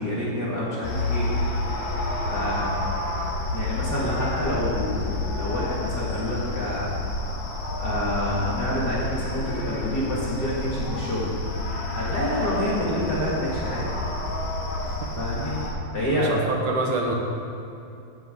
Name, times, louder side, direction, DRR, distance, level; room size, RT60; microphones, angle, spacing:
voice 1, 0.0-1.3 2.3-2.7 3.5-5.1 5.3-11.3 11.9-13.8 15.2-15.6 15.9-16.3, equal, 40° left, -7 dB, 1.5 m, -28 dB
sound 1, 0.8-15.7, left 2 dB, 80° left, 3.7 m, -29 dB
voice 2, 16.1-17.1, right 3 dB, 65° right, 0 dB, 2.3 m, -26 dB
16.0 x 11.0 x 3.7 m, 2.6 s
omnidirectional pair, 4.5 m